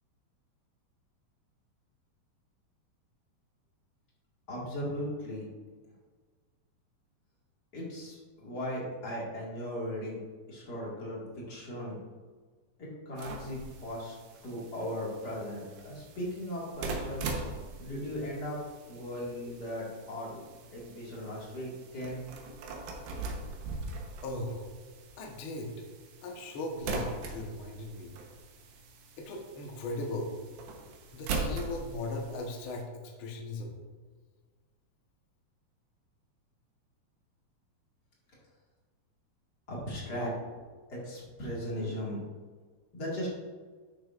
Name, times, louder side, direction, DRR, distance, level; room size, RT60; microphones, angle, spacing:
voice 1, 4.5-5.5 7.7-10.2 10.5-11.2 11.5-12.0 12.8-14.2 14.4-17.4 17.8-18.6 18.9-20.4 20.7-22.2 39.7-40.3 40.9-42.2 42.9-43.3, equal, 35° left, -5 dB, 1.9 m, -37 dB
sound 1, 13.2-32.8, right 3 dB, 80° right, 2.7 m, -41 dB
voice 2, 24.2-24.7 25.2-25.7 26.2-28.1 29.2-30.3 31.1-33.8, left 2 dB, 75° left, 0 dB, 1.2 m, -38 dB
11.5 x 6.6 x 2.5 m, 1.5 s
omnidirectional pair, 4.2 m